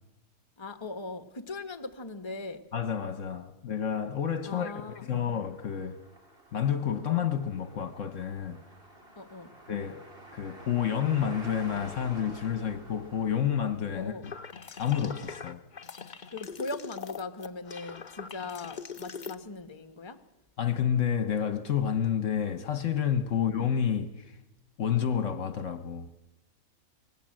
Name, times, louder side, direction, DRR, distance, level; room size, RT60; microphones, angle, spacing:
voice 1, 0.6-2.6 4.5-5.3 9.2-9.5 13.9-14.3 16.3-20.2 23.3-23.4, left 3 dB, 20° left, 1.2 m, -39 dB
voice 2, 2.7-6.0 6.5-8.6 9.7-10.1 10.3-14.3 14.8-15.6 20.6-24.4 24.8-26.1, left 8 dB, 60° left, 1.3 m, -29 dB
sound 1, 4.8-13.8, right 1 dB, 40° right, 3.5 m, -49 dB
sound 2, 14.2-19.3, left 6 dB, 40° left, 0.9 m, -42 dB
24.5 x 19.0 x 7.6 m
omnidirectional pair, 1.5 m